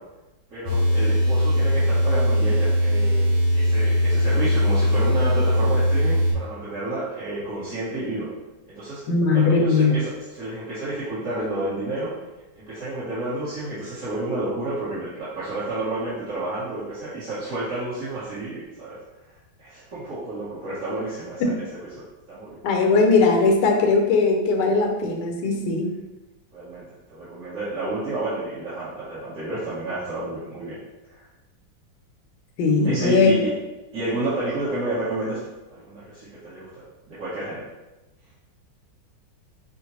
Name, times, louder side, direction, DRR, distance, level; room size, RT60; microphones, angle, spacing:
voice 1, 0.5-8.3 8.6-9.0 9.3-12.1 12.5-19.0 19.6-21.5 22.0-22.6 26.5-26.8 27.1-30.8 31.1-31.2 32.8-33.5 33.9-35.4 35.7-37.7, right 2 dB, 45° right, -13 dB, 1.3 m, -30 dB
sound 1, 0.7-6.3, equal, 80° right, 1.8 m, -20 dB
voice 2, 9.1-9.9 21.4-21.5 22.6-25.9 32.6-33.3, left 4 dB, 70° left, 2 dB, 1.1 m, -19 dB
5.4 x 2.1 x 3.0 m, 1.1 s
omnidirectional pair, 2.1 m